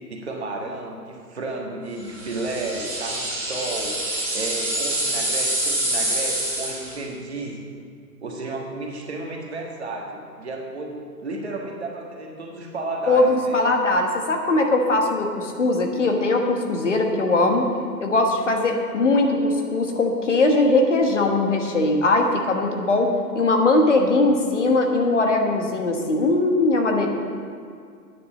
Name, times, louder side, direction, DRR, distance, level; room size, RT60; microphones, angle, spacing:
voice 1, 0.1-4.0 4.3-7.6 8.2-13.6, right 2 dB, 40° right, 0 dB, 1.5 m, -32 dB
sound 1, 2.2-7.0, right 1 dB, 5° right, 3.2 m, -26 dB
voice 2, 13.1-17.7 18.0-27.1, left 2 dB, 45° left, 3 dB, 1.3 m, -20 dB
9.9 x 8.2 x 7.4 m, 2.2 s
hypercardioid pair, 175°, 50 cm